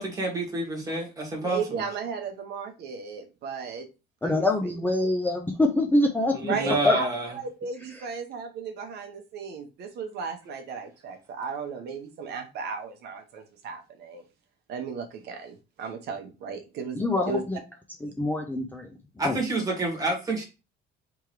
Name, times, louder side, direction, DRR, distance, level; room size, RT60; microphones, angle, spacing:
voice 1, 0.0-1.8 6.3-7.3 19.2-20.4, right 1 dB, 20° right, 0 dB, 1.6 m, -28 dB
voice 2, 1.4-3.9 4.2-4.5 6.5-7.1 7.3-14.2 14.7-17.0 17.3-17.4 18.0-18.1, right 5 dB, 60° right, 5 dB, 0.9 m, -35 dB
voice 3, 4.2-7.0 17.0-17.6 18.0-18.9 19.2-19.4, left 2 dB, 10° left, 2 dB, 0.5 m, -25 dB
3.6 x 3.0 x 4.7 m, 0.30 s
cardioid pair, 155°, 19 cm